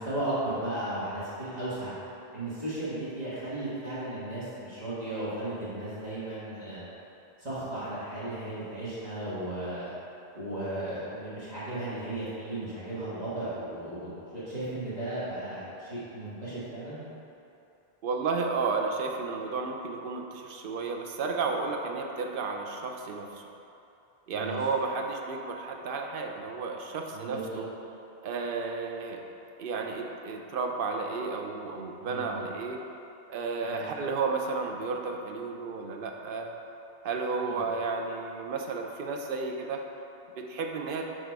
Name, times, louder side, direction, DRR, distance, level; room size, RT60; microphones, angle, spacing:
voice 1, 0.0-1.9 2.3-6.9 7.4-9.9 10.3-17.0 24.3-24.6 27.1-27.6 32.0-32.5 33.6-34.1 37.4-37.6, right 1 dB, 40° right, -12 dB, 1.6 m, -35 dB
voice 2, 18.0-23.4 24.3-27.7 28.2-29.2 29.6-32.8 33.3-36.6 37.0-39.8 40.4-41.1, right 4 dB, 65° right, 2 dB, 0.7 m, -32 dB
6.3 x 3.8 x 4.6 m, 2.8 s
omnidirectional pair, 1.1 m